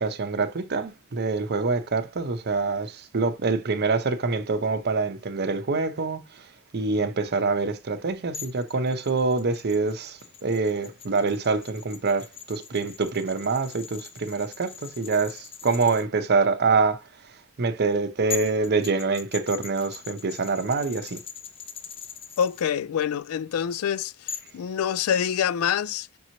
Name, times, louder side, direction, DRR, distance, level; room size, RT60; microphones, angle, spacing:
voice 1, 0.0-6.5 6.7-17.0 17.6-21.2, right 4 dB, 50° right, 0.6 m, -25 dB
sound 1, 8.3-16.0 17.9-18.0 18.3-22.6 24.3-24.6, left 7 dB, 25° left, 0.8 m, -41 dB
voice 2, 22.4-26.1, left 8 dB, 80° left, 0.3 m, -26 dB
5.3 x 2.9 x 2.8 m
head